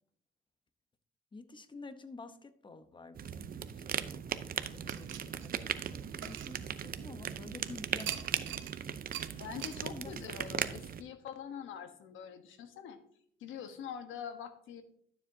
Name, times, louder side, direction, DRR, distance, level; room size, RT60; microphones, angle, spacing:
voice 1, 1.3-8.7 9.3-10.1, left 3 dB, 25° left, 10 dB, 0.9 m, -51 dB
sound 1, 3.1-11.0, right 8 dB, 45° right, 0.6 m, -38 dB
sound 2, 4.9-7.3 8.0-8.8 9.1-9.3 9.6-9.8, right 12 dB, 75° right, 0.8 m, -44 dB
voice 2, 9.4-13.0 13.4-14.8, left 8 dB, 85° left, 9 dB, 1.1 m, -44 dB
12.0 x 7.2 x 2.8 m, 0.65 s
cardioid pair, 90°, 20 cm